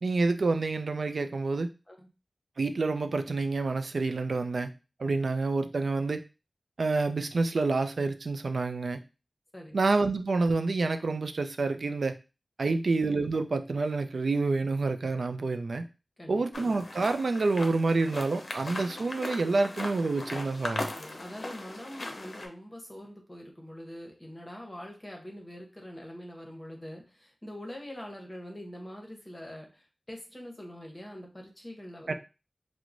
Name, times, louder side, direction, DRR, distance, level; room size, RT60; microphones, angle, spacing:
voice 1, 0.0-1.7 2.6-4.7 5.0-6.2 6.8-9.0 9.7-12.1 12.6-15.9 16.3-20.9 32.1-32.2, right 3 dB, 85° right, 8 dB, 0.3 m, -28 dB
sound 1, 16.5-22.5, left 2 dB, 70° left, 0.5 m, -39 dB
voice 2, 20.9-32.1, equal, 20° left, 1 dB, 0.8 m, -44 dB
4.5 x 2.0 x 2.5 m, 0.30 s
wide cardioid pair, 70°, 0 cm